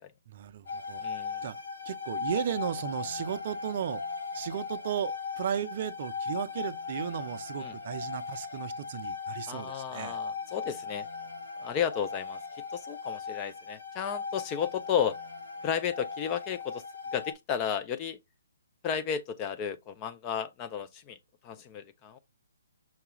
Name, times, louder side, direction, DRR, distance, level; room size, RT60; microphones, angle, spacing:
voice 1, 0.3-1.0 1.4-1.6 1.9-4.0 4.3-10.2, right 9 dB, 40° right, 0.4 m, -35 dB
sound 1, 0.7-17.3, left 5 dB, 75° left, 1.0 m, -38 dB
voice 2, 1.0-1.4 7.6-7.7 9.5-11.1 11.6-12.4 12.7-15.2 15.6-16.8 17.1-18.2 18.8-21.2 21.4-22.2, left 8 dB, 20° left, 0.3 m, -33 dB
5.7 x 2.3 x 2.9 m
hypercardioid pair, 160°, 0 cm